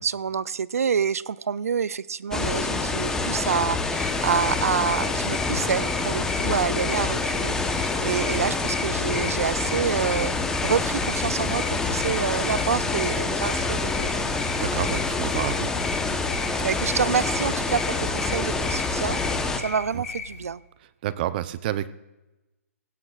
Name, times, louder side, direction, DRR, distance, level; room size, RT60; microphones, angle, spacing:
voice 1, 0.0-10.3 10.6-14.2 16.6-19.2 19.6-20.6, right 6 dB, 85° right, 0.5 m, -27 dB
sound 1, 2.3-19.6, left 3 dB, 5° left, 0.9 m, -27 dB
sound 2, 3.9-20.4, left 4 dB, 90° left, 2.5 m, -37 dB
voice 2, 14.5-15.7 19.9-20.0 21.0-21.9, right 12 dB, 40° right, 0.7 m, -29 dB
18.5 x 16.5 x 2.4 m
hypercardioid pair, 145°, 8 cm